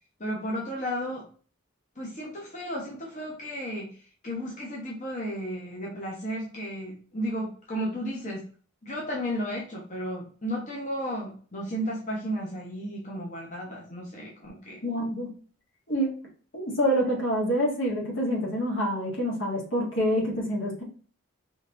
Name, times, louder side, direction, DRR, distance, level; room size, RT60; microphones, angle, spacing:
voice 1, 0.2-1.3 2.0-4.0 4.2-8.4 8.8-14.8, equal, 35° left, -3 dB, 1.0 m, -33 dB
voice 2, 14.8-15.3 15.9-16.1 16.5-20.8, equal, 65° left, -2 dB, 1.8 m, -27 dB
5.0 x 3.3 x 2.5 m, 0.42 s
head